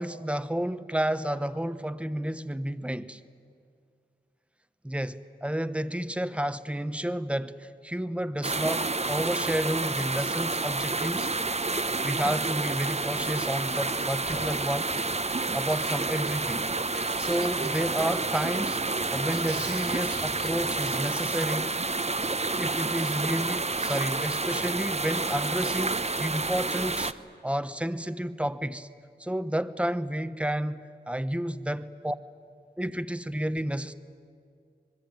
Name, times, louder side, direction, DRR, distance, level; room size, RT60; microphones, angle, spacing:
voice 1, 0.0-3.2 4.8-11.3 12.0-14.9 15.5-16.7 17.2-18.8 19.1-21.7 22.4-27.1 27.4-28.9 29.2-32.1 32.8-33.9, right 1 dB, 5° right, 12 dB, 1.1 m, -31 dB
sound 1, 8.4-27.1, right 3 dB, 35° right, 1.0 m, -29 dB
Male speech man speaking / Female speech woman speaking / Conversation, 12.8-20.5, right 4 dB, 70° right, 1.5 m, -43 dB
sound 2, 13.3-20.8, left 2 dB, 70° left, 3.0 m, -48 dB
25.5 x 21.5 x 9.3 m, 2.3 s
wide cardioid pair, 50°, 18 cm